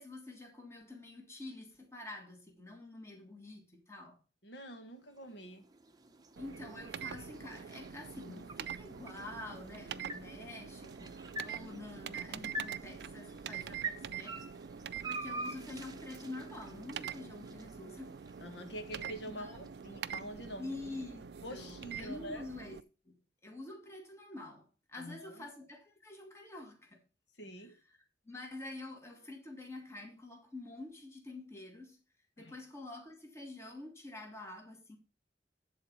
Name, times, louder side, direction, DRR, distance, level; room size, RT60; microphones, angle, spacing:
voice 1, 0.0-4.2 6.4-14.4 15.0-18.1 19.2-19.6 20.6-22.8 23.0-27.0 27.6-32.0 32.4-35.0, left 2 dB, 15° left, 1.7 m, -47 dB
voice 2, 4.4-5.7 18.4-20.7 21.4-22.4 25.0-25.4 27.4-27.7 32.4-32.6, equal, 85° left, 1.5 m, -46 dB
sound 1, 5.0-21.2, right 2 dB, 20° right, 0.7 m, -47 dB
sound 2, 6.4-22.8, right 7 dB, 70° right, 0.4 m, -45 dB
10.0 x 4.1 x 6.0 m
head